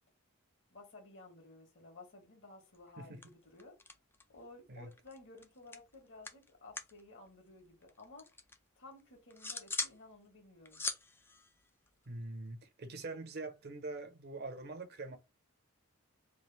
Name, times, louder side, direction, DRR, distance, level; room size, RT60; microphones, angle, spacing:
voice 1, 0.7-3.7 4.3-8.3 8.8-10.8, left 2 dB, 55° left, 1.4 m, -55 dB
sound 1, 2.7-3.0 3.2-4.4 4.7-7.0 7.3-8.6 9.0-10.0 10.3-12.4, left 3 dB, 10° left, 0.3 m, -43 dB
voice 2, 3.0-3.3 4.7-4.9 12.1-15.2, right 2 dB, 45° right, 0.7 m, -44 dB
3.3 x 2.5 x 4.0 m
head